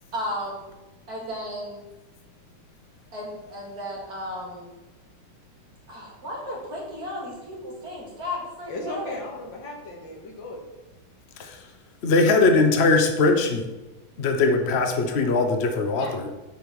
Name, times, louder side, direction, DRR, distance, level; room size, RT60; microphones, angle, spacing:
voice 1, 0.1-0.7 1.1-1.8 3.1-4.7 5.9-9.2, left 1 dB, 45° right, -4 dB, 2.7 m, -34 dB
voice 2, 8.7-10.6 16.0-16.3, left 2 dB, 60° left, -1 dB, 2.4 m, -36 dB
voice 3, 12.0-13.6 14.2-16.3, left 3 dB, 80° left, 5 dB, 0.5 m, -20 dB
9.2 x 4.7 x 5.3 m, 1.1 s
omnidirectional pair, 2.4 m